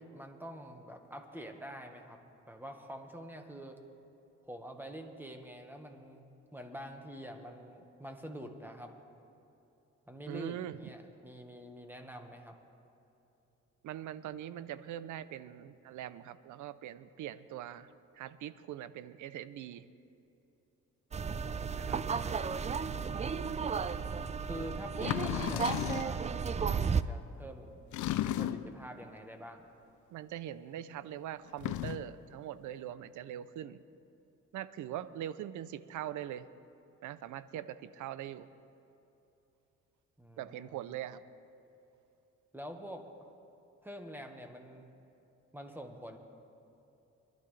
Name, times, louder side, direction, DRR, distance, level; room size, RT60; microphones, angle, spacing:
voice 1, 0.0-2.2 2.5-3.8 4.4-8.9 10.1-12.5 22.7-23.4 24.4-27.8 28.4-29.6 40.2-40.8 42.5-43.1 43.8-44.9 45.5-46.2, equal, 5° right, 4 dB, 1.5 m, -46 dB
voice 2, 10.3-10.8 13.8-19.9 21.8-22.0 30.1-33.8 34.5-36.5 37.0-38.5 40.4-41.2, right 11 dB, 75° right, 15 dB, 0.6 m, -42 dB
sound 1, 21.1-27.0, right 6 dB, 25° right, 0.4 m, -34 dB
sound 2, 25.0-26.2 27.9-28.8 31.5-32.1, left 12 dB, 75° left, 0.5 m, -34 dB
23.0 x 12.0 x 3.3 m, 2.9 s
cardioid pair, 90°, 30 cm